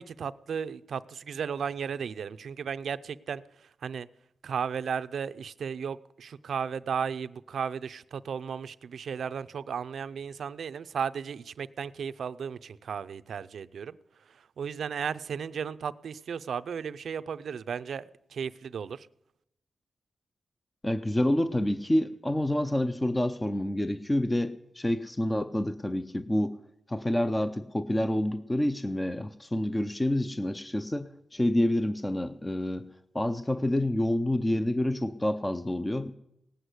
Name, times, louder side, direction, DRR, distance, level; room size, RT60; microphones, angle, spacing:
voice 1, 0.0-4.1 4.4-14.0 14.3-19.1, right 7 dB, 70° right, 0.5 m, -35 dB
voice 2, 20.8-26.6 26.9-32.9 33.1-36.1, left 1 dB, 15° left, 0.5 m, -28 dB
18.0 x 7.9 x 8.2 m
wide cardioid pair, 145°, 0 cm